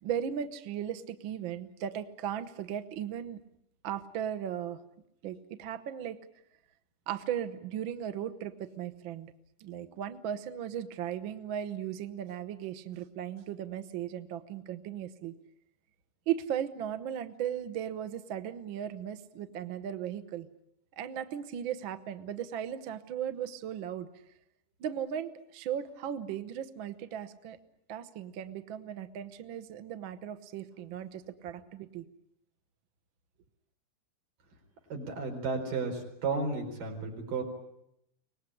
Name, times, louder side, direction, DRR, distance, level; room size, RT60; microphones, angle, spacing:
voice 1, 0.0-3.4 3.8-4.8 5.2-6.2 7.1-9.3 9.6-15.3 16.3-20.5 21.0-24.1 24.8-27.6 27.9-32.0, right 9 dB, 65° right, 10 dB, 1.3 m, -37 dB
voice 2, 34.9-37.4, right 4 dB, 85° right, 2 dB, 5.9 m, -33 dB
24.5 x 19.5 x 9.9 m, 0.80 s
omnidirectional pair, 3.7 m